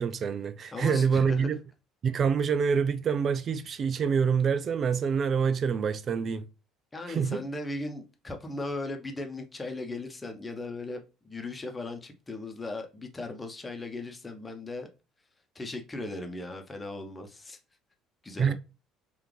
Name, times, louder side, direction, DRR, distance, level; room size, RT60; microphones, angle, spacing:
voice 1, 0.0-1.6 2.0-6.5 7.1-7.4 18.4-18.5, right 6 dB, 40° right, 0.4 m, -26 dB
voice 2, 0.7-1.6 6.9-14.9 15.5-17.6 18.2-18.5, left 2 dB, 20° left, 1.0 m, -37 dB
4.8 x 2.8 x 3.3 m
figure-of-eight pair, 55°, 0 cm